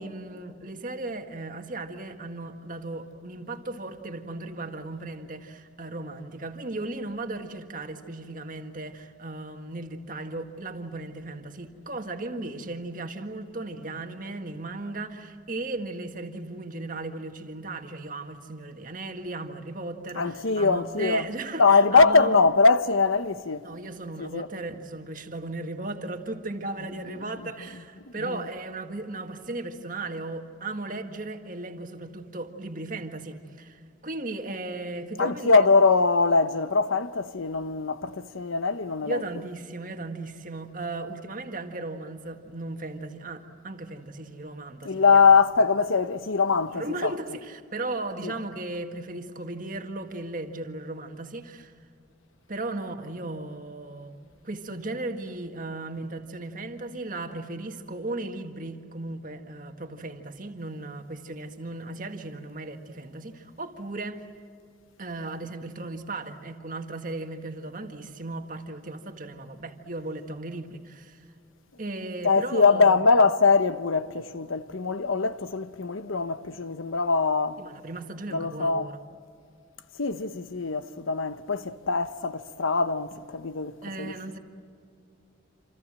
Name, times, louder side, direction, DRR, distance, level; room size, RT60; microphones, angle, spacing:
voice 1, 0.0-22.4 23.6-35.7 39.0-45.3 46.7-51.7 52.5-54.2 54.4-64.2 65.0-71.3 71.8-73.0 77.6-79.0 83.8-84.4, right 2 dB, 40° right, 1.8 m, -36 dB
voice 2, 20.2-21.3 21.6-23.7 24.2-24.5 27.2-27.3 28.2-28.4 35.2-39.2 44.8-47.1 48.2-48.3 72.2-77.6 78.3-78.9 80.0-84.2, left 4 dB, 85° left, 1.0 m, -22 dB
27.5 x 27.0 x 7.6 m
head